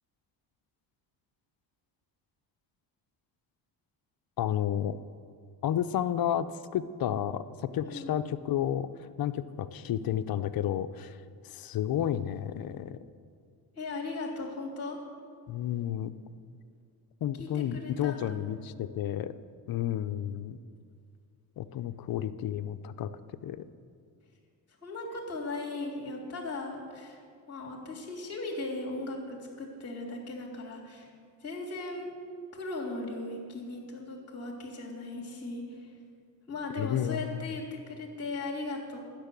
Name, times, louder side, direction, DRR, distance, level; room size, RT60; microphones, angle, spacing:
voice 1, 4.4-5.0 5.6-6.5 6.7-11.2 11.4-13.0 15.5-16.1 17.2-19.3 19.7-20.6 21.6-23.1 23.4-23.6 36.8-37.5, left 10 dB, 50° left, 12 dB, 0.6 m, -31 dB
voice 2, 13.7-15.0 17.4-18.4 24.8-27.2 27.5-31.1 31.4-32.1 32.5-36.0 36.5-39.0, left 2 dB, 30° left, -2 dB, 3.4 m, -38 dB
12.0 x 6.7 x 9.7 m, 2.2 s
cardioid pair, 110°, 47 cm